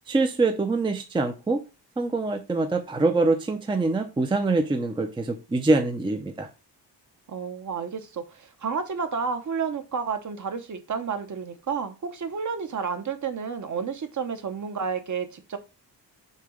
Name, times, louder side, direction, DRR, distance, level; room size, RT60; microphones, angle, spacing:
voice 1, 0.1-1.6 2.0-6.5, right 3 dB, 10° right, 0.5 m, -24 dB
voice 2, 7.3-15.6, right 6 dB, 45° right, 0.9 m, -31 dB
6.6 x 2.9 x 5.0 m
wide cardioid pair, 155°, 42 cm